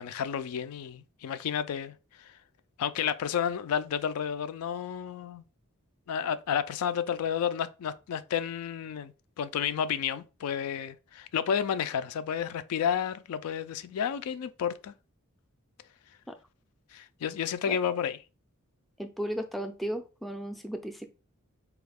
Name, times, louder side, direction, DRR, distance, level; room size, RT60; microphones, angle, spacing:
voice 1, 0.0-2.3 2.8-5.4 6.1-14.9 16.9-18.2, left 8 dB, 80° left, 0.3 m, -31 dB
voice 2, 19.0-21.0, equal, ahead, 0.3 m, -35 dB
4.2 x 2.4 x 3.4 m
head